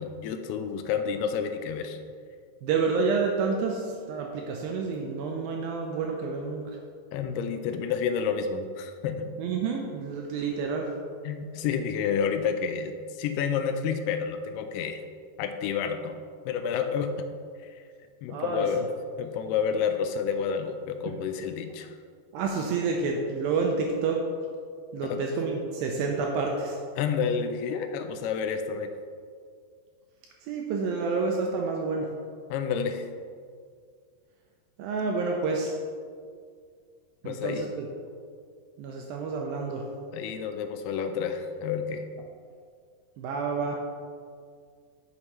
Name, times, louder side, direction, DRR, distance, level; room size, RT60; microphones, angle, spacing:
voice 1, 0.0-2.0 7.1-9.3 11.3-15.0 15.4-16.2 16.5-17.1 17.6-17.8 18.2-18.9 19.2-21.9 25.0-25.3 27.0-28.9 32.5-33.1 37.3-37.7 40.1-42.1, left 6 dB, 85° left, 8 dB, 2.5 m, -29 dB
voice 2, 2.6-6.8 9.4-10.9 18.3-18.7 21.1-21.2 22.3-24.2 24.9-26.8 30.4-32.1 34.8-35.7 37.2-37.8 38.8-39.8 43.2-43.8, right 4 dB, 80° right, 1 dB, 2.2 m, -29 dB
9.6 x 6.9 x 3.0 m, 2.1 s
omnidirectional pair, 4.7 m